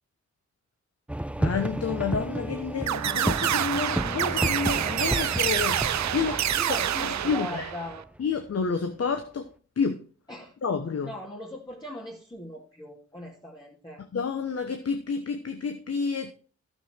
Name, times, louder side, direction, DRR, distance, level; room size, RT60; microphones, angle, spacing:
sound 1, 1.1-8.6, right 1 dB, 5° right, 0.4 m, -32 dB
voice 1, 1.4-6.3 6.7-7.7 8.2-9.5 9.8-10.0 10.6-11.1 14.1-16.3, left 5 dB, 55° left, 6 dB, 1.2 m, -29 dB
sound 2, 2.9-8.0, right 11 dB, 70° right, 0.5 m, -27 dB
voice 2, 6.1-8.0 10.3-10.5 11.0-14.0, left 1 dB, 15° left, -4 dB, 2.5 m, -39 dB
11.5 x 7.3 x 4.5 m, 0.39 s
cardioid pair, 55°, 29 cm